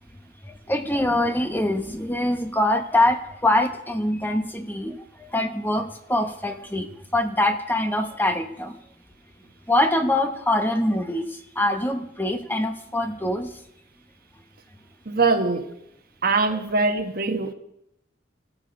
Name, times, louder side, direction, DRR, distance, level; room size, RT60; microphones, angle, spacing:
voice 1, 0.4-6.9 7.1-8.8 9.7-13.5, left 1 dB, 10° left, 0.9 m, -24 dB
voice 2, 15.0-15.7 16.2-17.5, right 3 dB, 50° right, 1.3 m, -22 dB
17.0 x 13.0 x 5.3 m
head